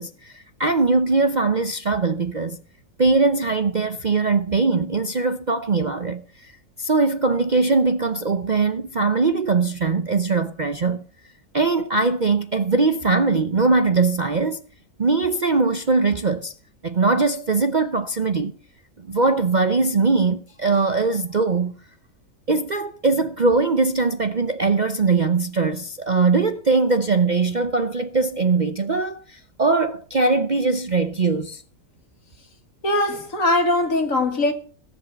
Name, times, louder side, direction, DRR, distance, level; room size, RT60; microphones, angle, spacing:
voice 1, 0.0-2.6 3.0-6.5 6.8-11.0 11.5-14.6 15.0-16.5 16.8-18.5 19.0-21.8 22.5-31.6, right 3 dB, 40° right, 0.7 m, -21 dB
voice 2, 32.8-34.5, left 2 dB, 60° left, 2.2 m, -21 dB
17.0 x 8.3 x 6.9 m
omnidirectional pair, 1.5 m